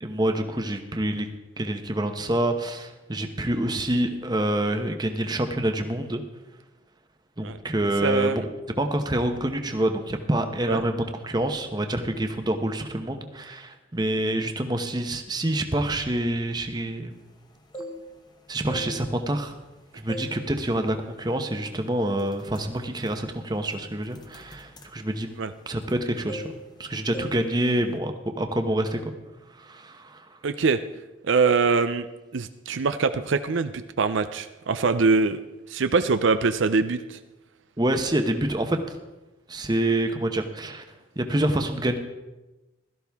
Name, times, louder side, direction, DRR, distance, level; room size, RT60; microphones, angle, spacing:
voice 1, 0.0-1.3 1.6-6.2 7.4-8.5 8.8-17.1 18.5-19.5 19.9-25.3 25.7-29.1 29.6-30.2 37.8-38.8 39.5-40.8 41.2-42.0, right 1 dB, 20° right, 6 dB, 0.9 m, -27 dB
voice 2, 8.0-8.4 10.7-10.8 25.4-25.5 30.4-30.8 31.2-32.1 32.3-35.4 35.7-37.2, right 4 dB, 70° right, 10 dB, 0.5 m, -23 dB
sound 1, 17.5-18.3 18.6-19.7 20.1-20.4 20.8-21.0 21.6-21.8 22.1-26.0 26.3-26.8 27.1-27.4 27.7-28.0, equal, 20° left, 1.0 m, -40 dB
16.5 x 13.0 x 3.5 m, 1.1 s
head